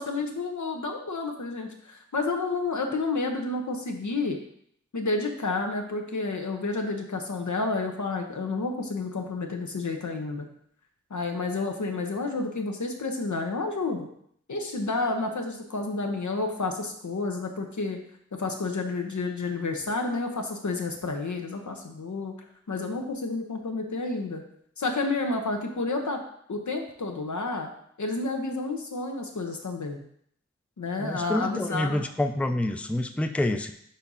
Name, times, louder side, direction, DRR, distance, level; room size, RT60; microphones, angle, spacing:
voice 1, 0.0-4.4 4.9-10.5 11.1-14.1 14.5-18.0 18.4-22.3 22.7-24.4 24.8-26.2 26.5-27.7 28.0-30.0 30.8-32.0, left 3 dB, 80° left, 3 dB, 1.0 m, -30 dB
voice 2, 31.0-33.7, left 1 dB, 5° left, 7 dB, 0.4 m, -27 dB
4.9 x 4.4 x 5.5 m, 0.68 s
wide cardioid pair, 55°, 29 cm